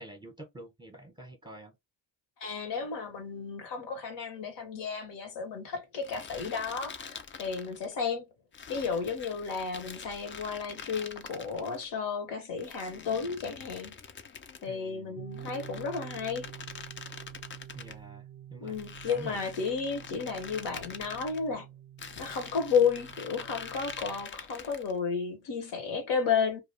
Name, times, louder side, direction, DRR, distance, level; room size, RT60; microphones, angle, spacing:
voice 1, 0.0-1.7 14.7-15.2 17.7-18.8 19.1-19.4 20.2-20.3, right 1 dB, 10° right, 0.9 m, -47 dB
voice 2, 2.4-8.3 8.7-13.9 14.6-16.5 18.6-21.7 22.2-26.6, left 6 dB, 65° left, 1.0 m, -32 dB
sound 1, 6.0-7.9 8.5-11.9 12.6-14.7 15.3-18.0 18.7-21.4 22.0-25.0, left 6 dB, 25° left, 0.5 m, -45 dB
sound 2, 15.1-24.3, right 11 dB, 30° right, 0.5 m, -48 dB
2.3 x 2.1 x 3.1 m
supercardioid pair, 65°, 45 cm